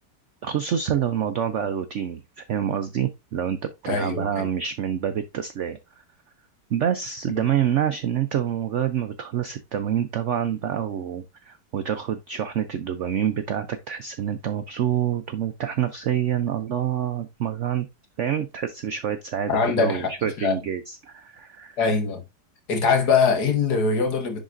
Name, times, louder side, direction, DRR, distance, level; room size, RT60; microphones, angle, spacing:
voice 1, 0.4-3.6 3.8-5.8 6.7-17.9 18.2-21.8, right 9 dB, 80° right, 0.6 m, -27 dB
voice 2, 3.9-4.5 19.5-20.1 20.4-20.6 21.8-22.2 22.7-24.4, left 5 dB, 60° left, 1.8 m, -22 dB
10.0 x 4.0 x 2.5 m
omnidirectional pair, 2.0 m